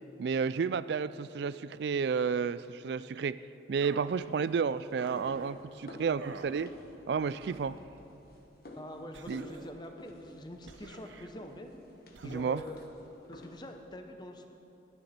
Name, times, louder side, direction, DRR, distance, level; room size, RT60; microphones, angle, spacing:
voice 1, 0.2-3.4 3.7-6.7 7.1-7.8 9.3-9.5 12.2-12.6, right 6 dB, 60° right, 17 dB, 0.3 m, -31 dB
sound 1, 3.8-4.2 5.0-5.5 6.2-6.6 7.3-7.9 9.1-9.8 10.7-11.3 12.1-12.6, right 3 dB, 80° right, 0.8 m, -49 dB
sound 2, 4.1-13.8, left 1 dB, 50° left, 1.4 m, -52 dB
voice 2, 8.8-11.7 12.2-12.8 13.3-14.5, left 1 dB, 25° left, 5 dB, 0.8 m, -45 dB
21.0 x 9.7 x 4.3 m, 3.0 s
head